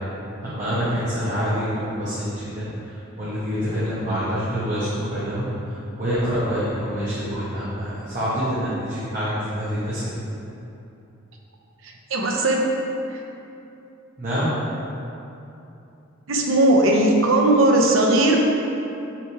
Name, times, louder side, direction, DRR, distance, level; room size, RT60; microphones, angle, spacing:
voice 1, 0.4-2.7 3.2-5.5 6.0-10.2 14.2-14.5, equal, 40° right, -12 dB, 1.2 m, -26 dB
voice 2, 12.1-12.7 13.1-13.2 16.3-18.4, right 1 dB, 70° right, 0 dB, 0.7 m, -18 dB
5.8 x 3.4 x 4.7 m, 2.8 s
head